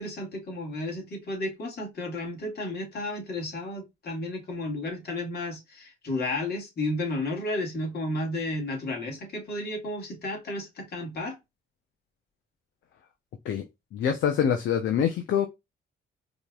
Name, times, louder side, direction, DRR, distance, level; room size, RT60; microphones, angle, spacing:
voice 1, 0.0-11.4, left 1 dB, 55° left, 2.3 m, -32 dB
voice 2, 13.9-15.5, left 8 dB, 75° left, 0.9 m, -25 dB
5.1 x 3.2 x 2.4 m
cardioid pair, 90°, 20 cm